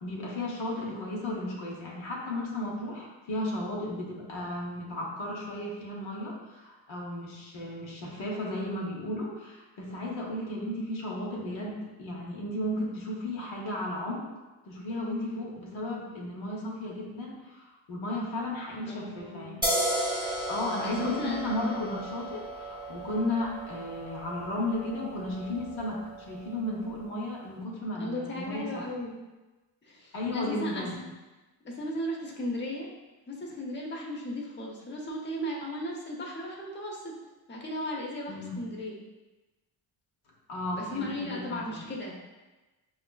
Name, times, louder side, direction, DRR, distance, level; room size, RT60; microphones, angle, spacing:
voice 1, 0.0-14.3 14.6-19.7 20.5-26.0 26.3-28.8 30.1-31.0 38.3-38.6 40.5-41.8, left 1 dB, 80° left, -2 dB, 0.9 m, -34 dB
voice 2, 18.8-19.6 20.8-21.6 28.0-29.3 29.8-31.0 31.6-32.9 33.3-37.1 37.5-38.9 40.7-42.2, left 1 dB, 25° left, -2 dB, 0.7 m, -36 dB
sound 1, 19.6-26.9, right 1 dB, 10° right, 0.8 m, -35 dB
5.1 x 2.4 x 2.2 m, 1.1 s
cardioid pair, 70°, 47 cm